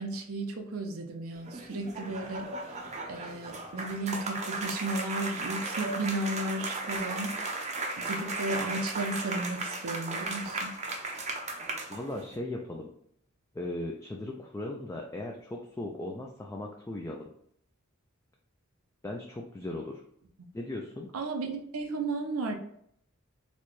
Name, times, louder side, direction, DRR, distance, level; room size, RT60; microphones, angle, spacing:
voice 1, 0.0-2.5 3.1-7.7 8.0-10.7 21.1-22.6, right 2 dB, 80° right, 4 dB, 0.5 m, -34 dB
sound 1, 1.3-12.3, right 2 dB, 35° right, 0.5 m, -36 dB
voice 2, 11.9-12.9 13.5-17.3 19.0-20.0 20.5-21.1, left 1 dB, 15° left, 0 dB, 0.3 m, -37 dB
4.0 x 2.2 x 3.1 m, 0.70 s
head